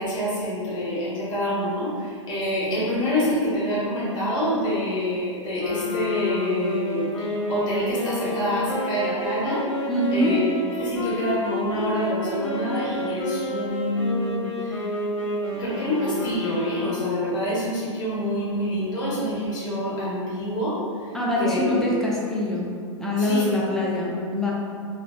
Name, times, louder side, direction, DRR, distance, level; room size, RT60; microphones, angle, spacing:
voice 1, 0.0-9.6 10.1-10.4 10.8-14.9 15.5-21.9 23.2-23.4, equal, 25° left, -8 dB, 1.1 m, -27 dB
sound 1, 5.6-17.4, left 1 dB, 70° left, 0.6 m, -30 dB
voice 2, 9.9-10.4 21.1-22.7 23.0-24.5, left 1 dB, 5° left, -5 dB, 0.3 m, -24 dB
3.1 x 2.0 x 2.4 m, 2.2 s
figure-of-eight pair, 100°, 16 cm